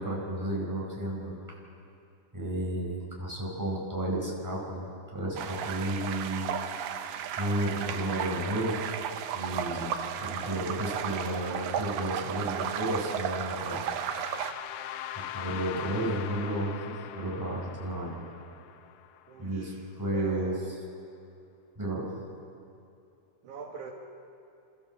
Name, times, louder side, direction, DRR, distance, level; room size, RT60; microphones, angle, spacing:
voice 1, 0.0-1.3 2.3-4.9 5.1-6.5 7.0-8.8 9.3-9.9 10.2-13.9 15.1-16.7 17.1-18.2 19.4-20.5 21.8-22.1, right 1 dB, 5° right, -4 dB, 4.7 m, -32 dB
sound 1, 5.4-14.5, right 8 dB, 85° right, 2.6 m, -34 dB
sound 2, 13.6-19.5, left 10 dB, 75° left, 2.0 m, -42 dB
voice 2, 19.3-19.8 20.1-20.6 23.4-23.9, right 5 dB, 70° right, 0 dB, 2.7 m, -42 dB
29.5 x 13.5 x 7.6 m, 2.6 s
omnidirectional pair, 3.8 m